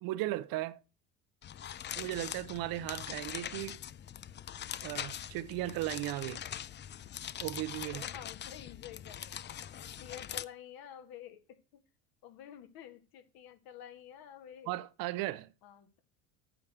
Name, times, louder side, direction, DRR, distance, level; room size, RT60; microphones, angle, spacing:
voice 1, 0.0-0.8 2.0-3.8 4.8-6.4 7.4-8.0 14.7-15.5, right 16 dB, 60° right, 0.8 m, -36 dB
sound 1, 1.4-10.4, left 10 dB, 25° left, 0.5 m, -42 dB
voice 2, 7.9-9.3 9.8-11.6 12.2-14.7 15.6-16.0, left 10 dB, 60° left, 2.1 m, -50 dB
8.8 x 4.7 x 6.7 m
hypercardioid pair, 85°, 41 cm